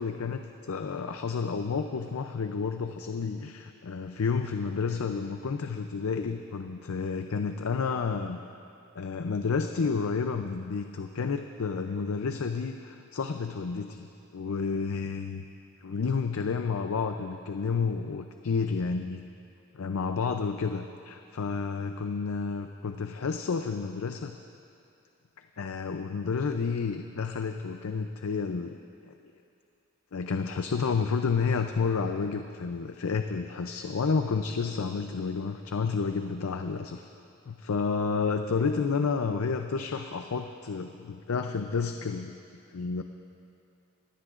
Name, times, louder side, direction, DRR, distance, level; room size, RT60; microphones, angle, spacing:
voice 1, 0.0-8.4 9.0-14.1 14.3-15.4 15.8-19.2 19.7-24.4 25.6-28.8 29.0-29.1 30.1-37.1 37.5-42.4 42.7-43.0, left 5 dB, 75° left, 6 dB, 0.5 m, -30 dB
24.0 x 17.5 x 2.5 m, 2.5 s
head